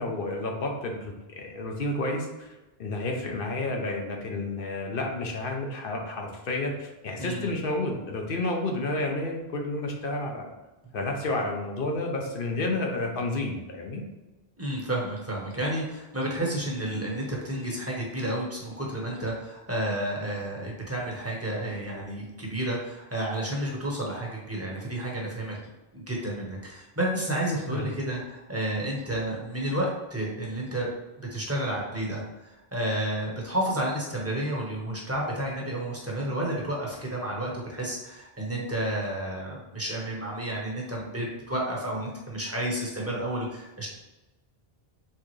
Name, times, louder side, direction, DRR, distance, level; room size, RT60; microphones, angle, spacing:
voice 1, 0.0-2.5 2.8-10.5 10.9-14.0 27.7-27.8, left 2 dB, 60° left, 1 dB, 0.9 m, -30 dB
voice 2, 7.2-7.5 14.6-25.6 25.9-30.9 31.2-43.9, right 1 dB, 15° right, -3 dB, 1.0 m, -31 dB
4.5 x 3.5 x 3.1 m, 1.1 s
omnidirectional pair, 1.0 m